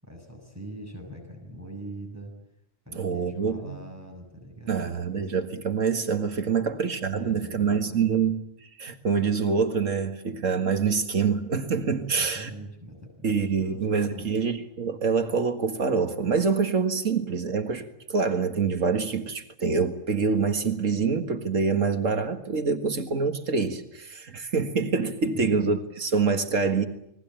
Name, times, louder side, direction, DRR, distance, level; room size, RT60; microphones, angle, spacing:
voice 1, 0.0-2.3 2.9-5.3 6.6-6.7 7.1-8.1 12.1-14.3 25.3-25.6, right 1 dB, 10° right, 1 dB, 6.9 m, -42 dB
voice 2, 3.0-3.8 4.7-12.5 13.2-26.9, right 5 dB, 85° right, 7 dB, 2.2 m, -26 dB
29.0 x 21.5 x 9.0 m, 0.74 s
omnidirectional pair, 1.3 m